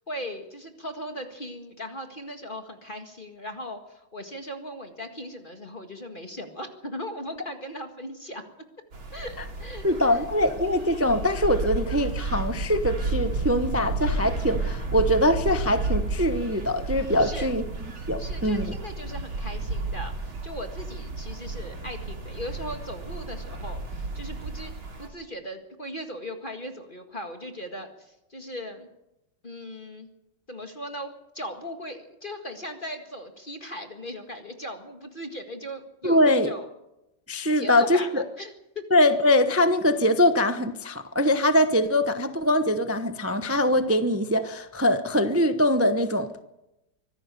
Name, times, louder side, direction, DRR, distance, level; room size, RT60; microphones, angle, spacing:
voice 1, 0.1-8.4 9.1-10.2 17.2-17.5 18.2-24.7 25.0-28.9 29.4-30.1 30.5-36.7 37.5-38.8, equal, 25° left, 1.9 m, -38 dB
sound 1, 8.9-25.1, right 3 dB, 85° right, 3.9 m, -32 dB
voice 2, 9.8-17.6 18.1-18.7 36.0-36.5 37.3-38.2 38.9-46.4, left 1 dB, 20° right, 0.4 m, -23 dB
24.5 x 16.5 x 6.9 m
omnidirectional pair, 2.2 m